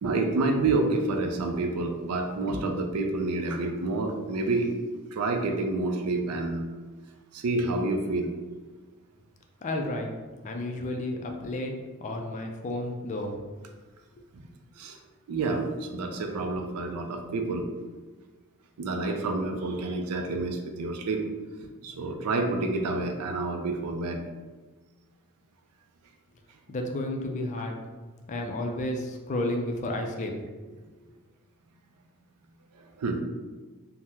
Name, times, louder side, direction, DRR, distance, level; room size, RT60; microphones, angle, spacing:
voice 1, 0.0-4.7 5.1-6.6 7.3-8.3 14.3-14.5 14.8-15.0 15.3-17.7 18.8-21.3 21.8-24.2 32.7-33.2, right 2 dB, 80° right, 5 dB, 0.4 m, -28 dB
voice 2, 9.6-10.1 10.4-11.7 12.0-13.3 26.7-27.8 28.3-30.3, left 1 dB, 35° left, 3 dB, 0.3 m, -31 dB
2.8 x 2.0 x 3.4 m, 1.3 s
head